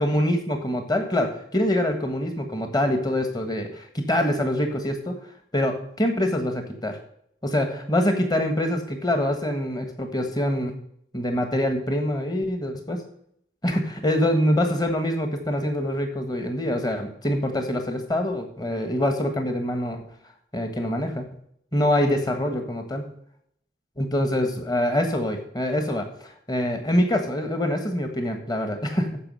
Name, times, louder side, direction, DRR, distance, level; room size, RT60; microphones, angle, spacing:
voice 1, 0.0-5.2 5.5-7.0 7.4-10.7 11.1-13.0 13.6-20.0 20.5-21.3 21.7-23.1 24.0-29.2, left 1 dB, 20° left, 5 dB, 1.5 m, -25 dB
14.0 x 5.4 x 5.5 m, 0.69 s
head